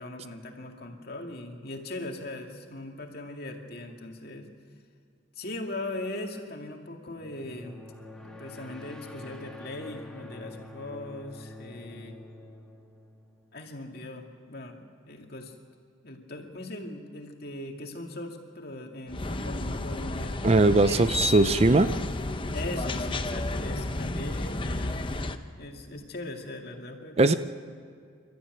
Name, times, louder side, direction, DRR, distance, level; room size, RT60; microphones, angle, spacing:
voice 1, 0.0-4.5 5.3-7.8 8.2-12.2 13.5-15.5 16.0-20.4 22.5-25.0 25.4-27.4, left 1 dB, 50° left, 2 dB, 2.3 m, -39 dB
sound 1, 7.1-13.7, left 2 dB, 5° left, 1.8 m, -46 dB
sound 2, 19.1-25.4, left 2 dB, 25° left, 0.7 m, -31 dB
voice 2, 20.4-21.9 27.2-27.3, right 2 dB, 30° right, 12 dB, 0.5 m, -20 dB
28.5 x 13.0 x 9.2 m, 2.2 s
head